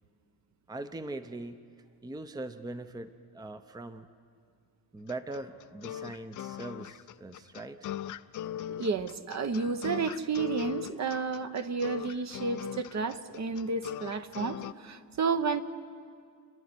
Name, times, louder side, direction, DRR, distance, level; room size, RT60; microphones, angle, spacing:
voice 1, 0.7-1.6 2.0-4.1 4.9-7.9, right 2 dB, 10° right, 10 dB, 0.7 m, -41 dB
sound 1, 5.1-14.7, left 11 dB, 50° left, 0.6 m, -40 dB
voice 2, 8.8-15.6, right 5 dB, 45° right, 9 dB, 1.0 m, -31 dB
29.5 x 11.0 x 9.7 m, 2.2 s
cardioid pair, 95°, 38 cm